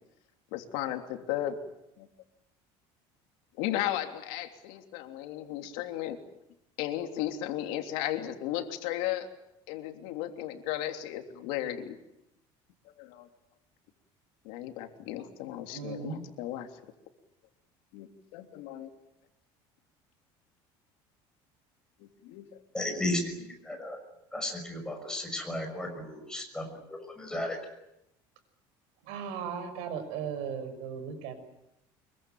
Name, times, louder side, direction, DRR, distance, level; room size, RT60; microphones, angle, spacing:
voice 1, 0.5-1.6 2.0-2.1 3.6-6.2 6.8-9.3 9.7-12.0 13.0-13.3 14.4-16.7 17.9-18.1 18.3-18.9 22.2-22.4, left 13 dB, 85° left, 5 dB, 3.3 m, -35 dB
voice 2, 15.7-16.2 29.0-31.3, right 7 dB, 75° right, 8 dB, 6.2 m, -37 dB
voice 3, 22.7-24.0 24.3-27.6, left 1 dB, 5° left, 4 dB, 6.1 m, -34 dB
25.5 x 23.0 x 9.3 m, 0.86 s
cardioid pair, 165°, 11 cm